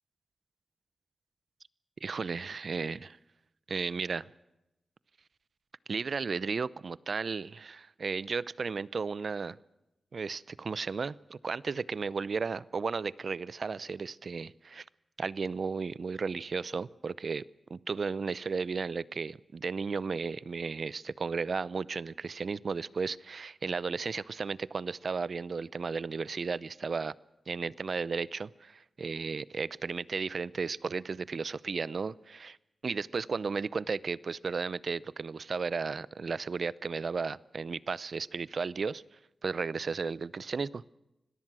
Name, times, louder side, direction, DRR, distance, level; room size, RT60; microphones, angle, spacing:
voice 1, 2.0-3.1 3.7-4.3 5.9-9.6 10.1-14.8 15.2-17.4 17.7-27.1 27.5-32.6 32.8-39.0 39.4-40.9, right 5 dB, 60° right, 20 dB, 0.6 m, -34 dB
25.5 x 18.0 x 6.2 m, 0.92 s
cardioid pair, 60°, 0 cm